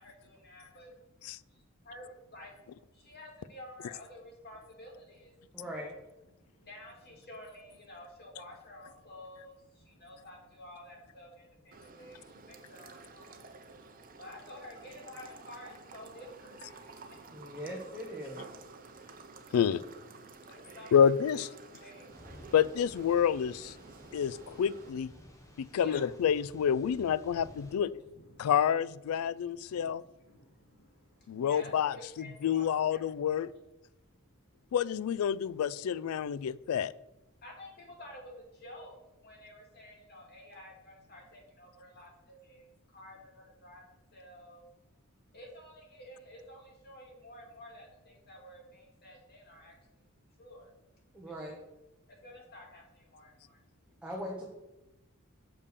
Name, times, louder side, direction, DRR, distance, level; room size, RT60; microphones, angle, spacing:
voice 1, 0.0-1.3 1.9-2.6 3.1-5.3 5.6-5.8 6.6-17.6 18.7-18.9 20.3-21.4 21.8-22.5 23.8-24.2 25.4-26.0 26.8-26.9 27.8-28.5 29.1-32.7 32.9-33.4 34.5-34.7 37.4-44.6 45.3-50.1 50.4-50.7 51.2-51.6 52.1-53.6 53.9-54.0, left 1 dB, 50° left, -1 dB, 2.3 m, -52 dB
voice 2, 5.6-5.9 17.3-18.4 51.1-51.6 54.0-54.4, equal, 5° right, -3 dB, 1.1 m, -40 dB
sound 1, 11.7-24.9, right 4 dB, 40° right, 0.8 m, -52 dB
voice 3, 20.9-21.5 22.5-23.7 24.1-25.1 25.6-27.9 28.4-30.0 31.3-32.0 32.4-33.5 34.7-36.9, left 8 dB, 85° left, 19 dB, 0.3 m, -28 dB
Thunder / Rain, 22.1-27.8, equal, 15° left, 1.2 m, -54 dB
6.7 x 5.4 x 6.6 m, 0.97 s
head